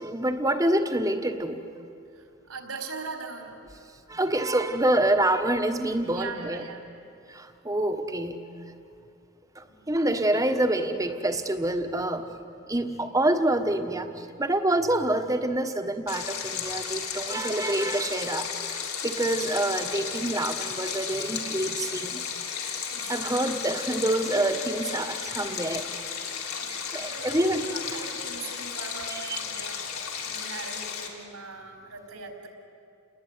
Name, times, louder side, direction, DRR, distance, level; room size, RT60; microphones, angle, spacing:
voice 1, 0.0-1.6 4.1-6.6 7.3-8.4 9.5-12.3 12.7-22.2 23.1-25.8 26.9-27.7 28.0-28.1 29.1-29.4, right 1 dB, 15° right, 7 dB, 1.3 m, -27 dB
voice 2, 2.2-3.5 6.1-6.8 9.7-9.9 22.9-23.5 24.3-24.5 26.5-29.8 30.2-32.5, right 4 dB, 85° right, 4 dB, 4.4 m, -41 dB
Stream, 16.1-31.1, left 7 dB, 75° left, 3.6 m, -34 dB
29.5 x 20.5 x 9.7 m, 2.6 s
head